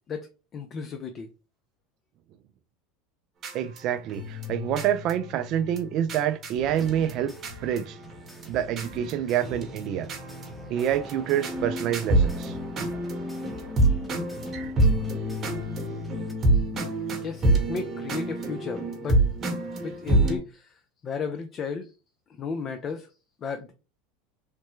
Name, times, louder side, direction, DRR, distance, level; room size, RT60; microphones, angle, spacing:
voice 1, 0.5-1.3 16.5-16.6 17.2-19.2 19.8-21.9 22.4-23.1 23.4-23.7, left 5 dB, 35° left, 0.4 m, -34 dB
sound 1, 3.4-8.5 8.8-9.1 9.4-20.4, right 1 dB, 35° right, 1.0 m, -28 dB
voice 2, 3.5-7.3 7.6-8.0 8.5-10.1 10.7-12.6, right 10 dB, 50° right, 0.3 m, -27 dB
sound 2, 6.5-16.3, left 1 dB, ahead, 0.7 m, -45 dB
3.2 x 2.1 x 3.0 m
supercardioid pair, 115°, 0 cm